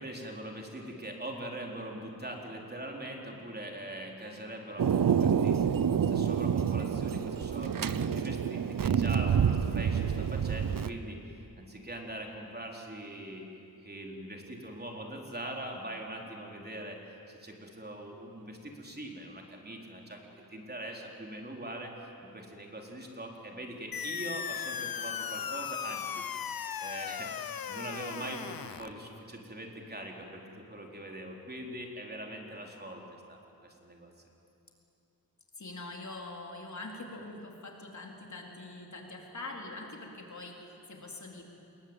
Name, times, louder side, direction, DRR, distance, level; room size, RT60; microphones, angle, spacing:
voice 1, 0.0-11.2 11.6-13.5 13.8-17.0 17.3-20.2 20.5-21.9 22.2-26.5 26.8-27.3 27.7-33.0 33.3-34.1, right 1 dB, 25° right, 0 dB, 4.1 m, -42 dB
Thunder, 4.8-10.9, right 7 dB, 65° right, 0.9 m, -28 dB
sound 1, 23.9-28.9, left 8 dB, 70° left, 0.9 m, -37 dB
voice 2, 35.5-41.4, left 2 dB, 50° left, 0 dB, 4.1 m, -44 dB
27.5 x 22.0 x 9.0 m, 2.7 s
wide cardioid pair, 80°, 36 cm